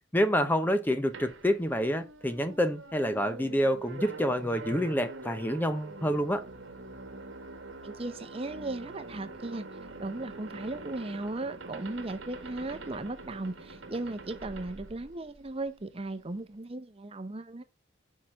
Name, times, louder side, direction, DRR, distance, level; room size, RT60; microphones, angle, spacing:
voice 1, 0.1-6.4, equal, 10° left, 0.6 m, -28 dB
sound 1, 1.1-15.7, right 2 dB, 85° right, 1.3 m, -44 dB
voice 2, 7.8-9.7 10.0-17.6, right 2 dB, 30° right, 0.8 m, -37 dB
5.8 x 4.9 x 5.7 m
head